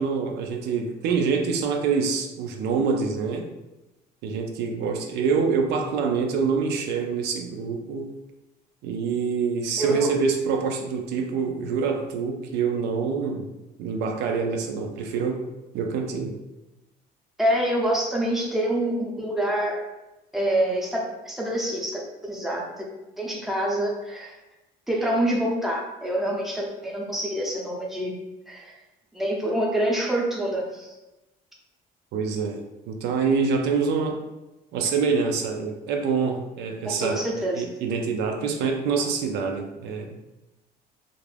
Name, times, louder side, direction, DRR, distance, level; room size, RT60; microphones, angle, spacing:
voice 1, 0.0-3.5 4.2-8.1 8.8-13.5 13.8-16.4 32.1-34.2 34.7-40.1, right 5 dB, 80° right, 4 dB, 0.4 m, -26 dB
voice 2, 9.8-10.1 17.4-19.8 20.3-22.8 23.2-24.4 24.9-28.1 28.5-28.7 29.1-30.9 36.8-37.6, right 1 dB, ahead, -2 dB, 0.5 m, -26 dB
2.4 x 2.1 x 3.2 m, 1.0 s
cardioid pair, 110°, 17 cm